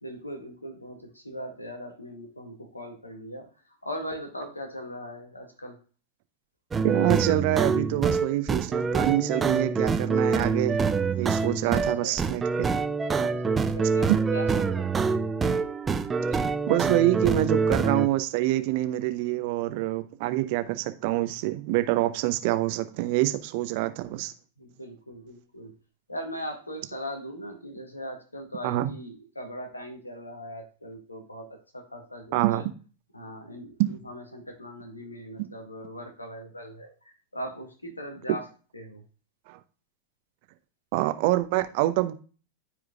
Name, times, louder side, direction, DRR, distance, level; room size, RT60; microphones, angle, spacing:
voice 1, 0.0-3.5 3.8-5.8 11.4-12.2 13.2-15.6 24.6-25.7 26.1-32.7 33.1-38.4 38.7-39.0, equal, 80° left, 1.8 m, -40 dB
sound 1, 6.7-18.1, right 4 dB, 15° right, 0.6 m, -26 dB
voice 2, 6.8-12.7 16.7-24.3 28.6-28.9 32.3-32.7 33.8-33.9 39.5-39.6 40.9-42.1, right 15 dB, 45° right, 0.8 m, -26 dB
13.0 x 4.9 x 2.3 m
figure-of-eight pair, 90°, 0 cm